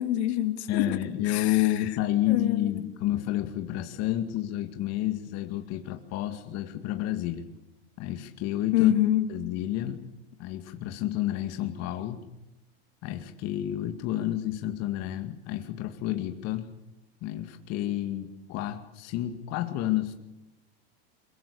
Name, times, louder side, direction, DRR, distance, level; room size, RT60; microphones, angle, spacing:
voice 1, 0.0-0.9 1.2-1.9 2.3-2.7 8.7-9.3, left 12 dB, 70° left, 8 dB, 2.9 m, -26 dB
voice 2, 0.7-7.5 8.0-8.9 9.3-10.0 10.4-12.2 13.0-16.7 17.2-20.1, left 13 dB, 50° left, 6 dB, 2.3 m, -30 dB
23.5 x 23.0 x 8.4 m, 0.94 s
hypercardioid pair, 115°, 34 cm